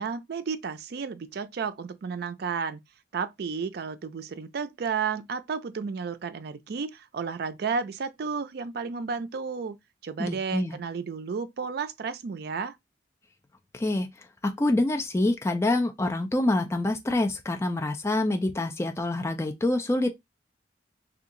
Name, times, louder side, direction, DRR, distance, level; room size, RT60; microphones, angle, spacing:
voice 1, 0.0-2.8 3.1-9.8 10.0-12.7, right 5 dB, 60° right, 0.4 m, -32 dB
voice 2, 10.2-10.8 13.7-14.1 14.4-20.1, left 2 dB, 15° left, 0.4 m, -26 dB
2.7 x 2.3 x 3.7 m
head